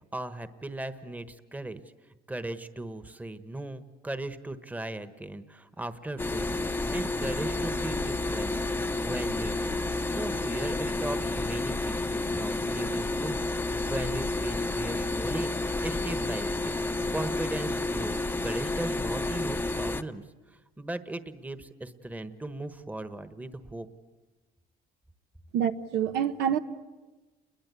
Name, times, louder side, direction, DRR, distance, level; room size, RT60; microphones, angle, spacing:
voice 1, 0.1-1.8 2.3-9.8 10.1-15.5 15.8-16.7 17.1-20.2 20.8-23.9, right 1 dB, 10° right, 11 dB, 1.3 m, -37 dB
sound 1, 6.2-20.0, left 2 dB, 10° left, 0.9 m, -30 dB
voice 2, 25.5-26.6, right 9 dB, 80° right, 8 dB, 1.2 m, -27 dB
29.5 x 22.0 x 8.4 m, 1.2 s
cardioid pair, 110°, 17 cm